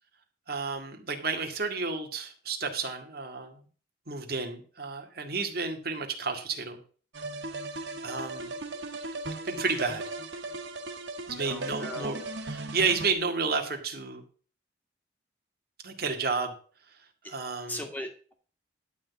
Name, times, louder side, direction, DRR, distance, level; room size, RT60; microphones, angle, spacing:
voice 1, 0.5-3.6 4.1-6.8 7.7-8.5 9.4-10.0 11.3-14.2 15.8-16.5 17.3-17.8, right 4 dB, 55° right, 4 dB, 2.0 m, -31 dB
sound 1, 7.1-13.1, right 2 dB, 85° right, 1.6 m, -37 dB
voice 2, 11.4-12.2 17.7-18.3, left 1 dB, 10° left, 3 dB, 2.1 m, -38 dB
12.0 x 4.2 x 8.2 m, 0.41 s
head